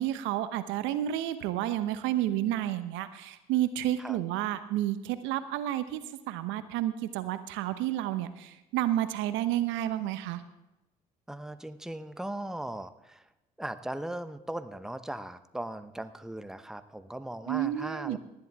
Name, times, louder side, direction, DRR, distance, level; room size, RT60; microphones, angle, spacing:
voice 1, 0.0-10.4 17.5-18.2, right 13 dB, 70° right, 12 dB, 1.0 m, -30 dB
voice 2, 11.3-13.2 13.6-18.2, right 1 dB, ahead, 11 dB, 0.9 m, -38 dB
19.0 x 11.0 x 3.5 m, 0.96 s
hypercardioid pair, 55°, 21 cm